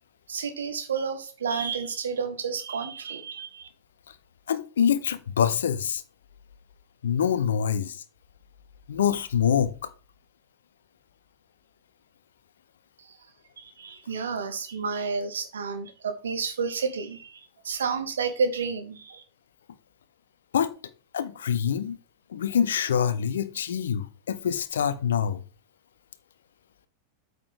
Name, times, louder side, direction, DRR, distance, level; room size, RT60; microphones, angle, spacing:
voice 1, 0.3-3.7 13.0-13.1 13.6-19.2, right 5 dB, 65° right, 1.5 m, -31 dB
voice 2, 4.5-6.0 7.0-8.0 8.9-9.9 20.5-20.7 21.1-22.0 22.3-25.4, left 8 dB, 65° left, 0.8 m, -25 dB
8.6 x 6.6 x 3.6 m
figure-of-eight pair, 90°, 0 cm